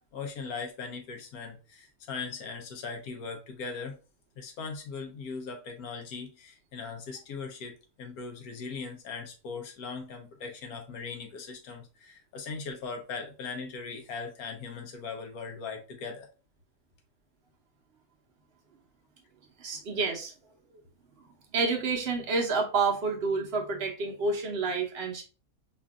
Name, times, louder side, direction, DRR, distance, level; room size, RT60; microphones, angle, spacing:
voice 1, 0.1-4.0 4.4-16.3, left 5 dB, 90° left, 1.3 m, -39 dB
voice 2, 19.6-20.3 21.5-25.2, right 4 dB, 50° right, 0.9 m, -29 dB
5.1 x 2.5 x 2.3 m
omnidirectional pair, 1.5 m